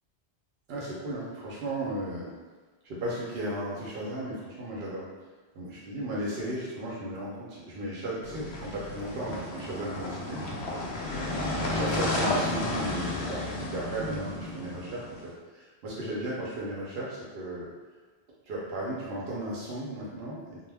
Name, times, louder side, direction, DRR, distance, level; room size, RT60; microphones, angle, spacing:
voice 1, 0.7-2.3 2.8-5.1 5.5-10.4 11.6-17.7 18.5-20.6, right 1 dB, 70° right, -5 dB, 0.8 m, -35 dB
sound 1, 8.2-15.2, left 2 dB, 75° left, 0.8 m, -32 dB
2.2 x 2.1 x 3.2 m, 1.3 s
omnidirectional pair, 1.1 m